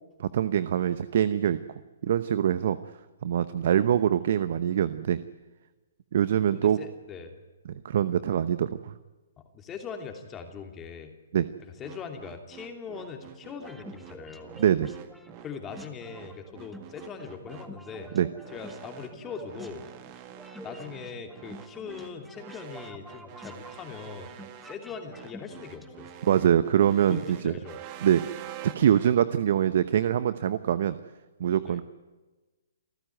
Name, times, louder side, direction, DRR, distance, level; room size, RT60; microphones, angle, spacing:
voice 1, 0.2-1.6 2.0-2.8 3.2-5.2 6.1-6.8 7.8-8.9 11.3-11.5 14.6-14.9 18.1-18.3 26.2-27.5 28.0-28.2 28.7-31.0 31.4-31.8, right 10 dB, 55° right, 14 dB, 0.9 m, -24 dB
voice 2, 6.5-7.3 9.4-11.1 11.8-14.6 15.4-18.2 18.5-19.8 20.6-24.3 24.6-26.1 27.1-27.8 31.6-31.8, left 6 dB, 20° left, 4 dB, 2.8 m, -41 dB
sound 1, 11.8-29.1, right 11 dB, 35° right, 1.9 m, -47 dB
sound 2, 13.6-26.3, equal, ahead, 1.8 m, -48 dB
28.0 x 14.5 x 9.4 m, 1.2 s
hypercardioid pair, 130°, 0 cm